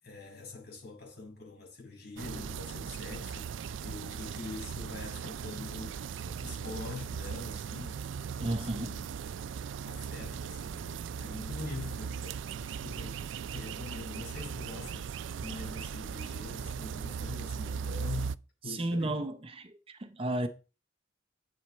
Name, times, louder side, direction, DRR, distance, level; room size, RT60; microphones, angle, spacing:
voice 1, 0.0-8.0 8.3-9.1 9.8-13.2 13.5-15.1 15.4-18.4 18.6-19.3, left 3 dB, 55° left, 6.5 m, -44 dB
sound 1, 2.2-18.4, right 6 dB, 80° right, 0.4 m, -38 dB
voice 2, 8.4-8.9 18.7-20.5, right 1 dB, 30° right, 0.6 m, -33 dB
8.5 x 7.7 x 4.3 m
head